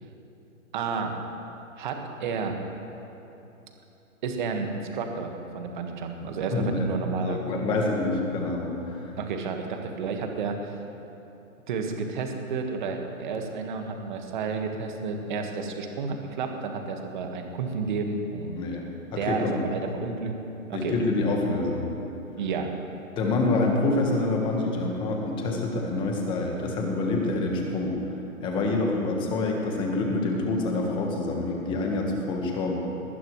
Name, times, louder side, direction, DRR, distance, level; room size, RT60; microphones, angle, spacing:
voice 1, 0.7-1.1 1.8-2.6 4.2-7.7 9.2-10.9 11.7-18.7 19.2-20.4 20.7-21.0 22.4-22.7, right 5 dB, 35° right, 4 dB, 1.7 m, -31 dB
voice 2, 6.5-6.9 7.2-9.1 18.6-18.9 19.1-19.6 20.7-21.9 23.2-28.0 28.4-32.8, left 2 dB, 10° left, 1 dB, 1.4 m, -27 dB
21.0 x 19.0 x 3.2 m, 3.0 s
hypercardioid pair, 155°, 42 cm